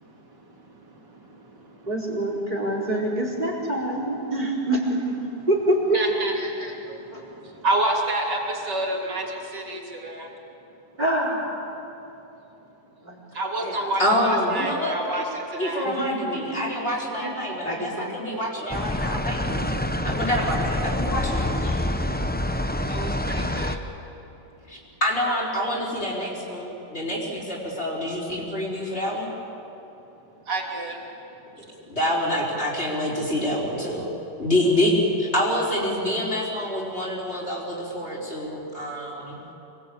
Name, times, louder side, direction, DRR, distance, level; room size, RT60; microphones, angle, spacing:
voice 1, 0.7-1.0 1.3-1.8 5.9-10.3 13.3-15.9 22.9-23.8 30.5-31.0, right 2 dB, 80° right, 0 dB, 3.8 m, -29 dB
voice 2, 1.9-6.0 6.3-7.2 11.0-11.8 13.0-13.2 13.6-13.9 15.8-16.8 17.2-17.3 17.6-18.2 18.6-18.9, right 1 dB, 25° right, -1 dB, 4.7 m, -27 dB
voice 3, 14.0-15.2 15.5-19.6 20.0-21.8 24.7-29.3 31.6-34.1 34.4-34.9 35.2-39.4, left 1 dB, 35° left, -3 dB, 5.0 m, -27 dB
sound 1, 18.7-23.8, left 1 dB, 10° left, 0.6 m, -26 dB
26.0 x 21.5 x 8.6 m, 2.9 s
omnidirectional pair, 1.8 m